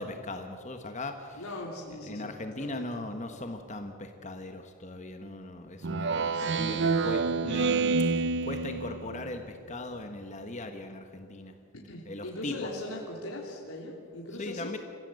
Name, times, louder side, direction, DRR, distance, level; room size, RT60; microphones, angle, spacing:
voice 1, 0.0-1.6 1.9-7.8 8.4-11.5 12.1-12.7 14.3-14.8, left 2 dB, 35° left, 6 dB, 1.2 m, -39 dB
voice 2, 1.4-3.0 11.8-14.7, left 1 dB, 80° left, -2 dB, 3.1 m, -40 dB
Speech synthesizer, 5.8-9.3, right 4 dB, 55° right, 0.7 m, -28 dB
29.5 x 16.0 x 7.7 m, 2.5 s
head